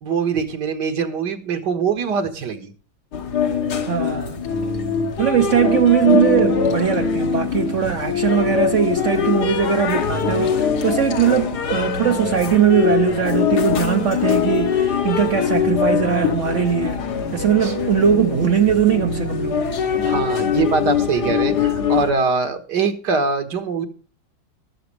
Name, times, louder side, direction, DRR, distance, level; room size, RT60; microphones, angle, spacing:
voice 1, 0.0-2.7 17.6-17.7 20.1-23.9, right 5 dB, 75° right, 2.0 m, -23 dB
sound 1, 3.1-22.1, left 6 dB, 70° left, 1.8 m, -22 dB
voice 2, 3.9-4.4 5.2-17.0 17.3-19.7, right 8 dB, 60° right, 0.8 m, -20 dB
14.0 x 12.5 x 3.2 m
omnidirectional pair, 1.9 m